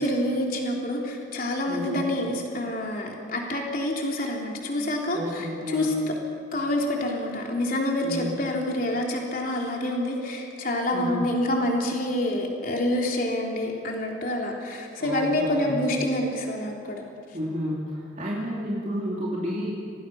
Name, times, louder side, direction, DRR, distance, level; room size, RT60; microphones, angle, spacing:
voice 1, 0.0-5.9 6.5-17.0, left 1 dB, 50° left, -1 dB, 3.6 m, -27 dB
voice 2, 1.7-2.0 5.1-6.0 8.0-8.4 10.9-11.3 15.0-15.9 17.3-19.7, equal, 40° right, -5 dB, 2.7 m, -31 dB
26.5 x 19.0 x 6.0 m, 2.4 s
head